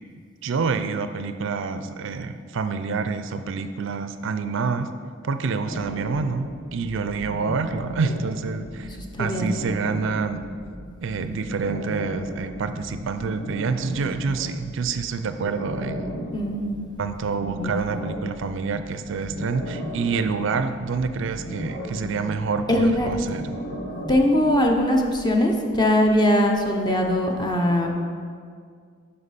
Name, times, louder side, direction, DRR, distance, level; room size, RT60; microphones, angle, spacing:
voice 1, 0.4-4.9 5.2-8.9 9.2-10.4 11.0-16.1 17.0-23.6, right 4 dB, 70° right, 10 dB, 0.4 m, -27 dB
sound 1, 5.6-24.6, equal, 65° left, 1.2 m, -36 dB
voice 2, 8.8-9.6 16.3-16.8 17.5-17.7 22.7-23.1 24.1-27.9, left 1 dB, 20° left, 2 dB, 0.8 m, -21 dB
9.6 x 5.7 x 4.1 m, 2.1 s
head